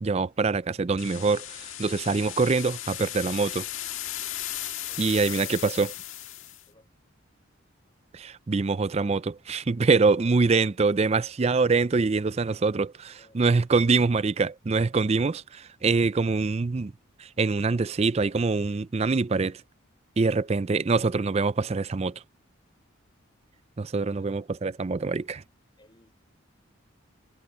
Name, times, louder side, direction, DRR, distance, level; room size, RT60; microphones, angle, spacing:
voice 1, 0.0-1.4 1.8-3.6 5.0-5.9 8.1-16.9 17.4-19.6 20.2-22.1 23.8-25.4, right 4 dB, 30° right, 0.4 m, -24 dB
sound 1, 1.0-6.6, left 12 dB, 75° left, 1.8 m, -36 dB
voice 2, 6.4-6.9 9.9-10.7 13.0-13.7 20.2-20.6 23.1-23.2 23.9-24.3 25.8-26.1, left 1 dB, 25° left, 5.0 m, -58 dB
head